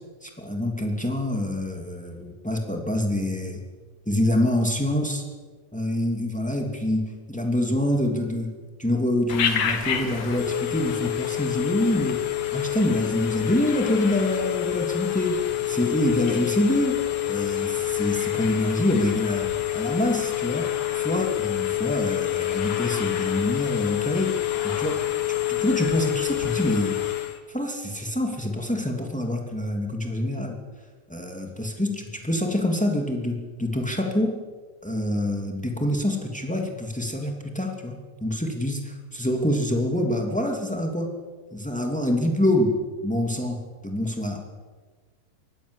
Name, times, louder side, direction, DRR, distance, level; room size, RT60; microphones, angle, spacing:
voice 1, 0.2-3.6 4.0-5.2 5.7-12.2 12.5-25.1 25.5-27.0 27.5-30.6 31.1-34.3 34.8-41.1 41.5-44.4, left 1 dB, 10° left, 2 dB, 0.3 m, -26 dB
Telephone, 9.3-27.4, left 14 dB, 55° left, 2.5 m, -27 dB
24.5 x 19.0 x 8.2 m, 1.4 s
omnidirectional pair, 5.8 m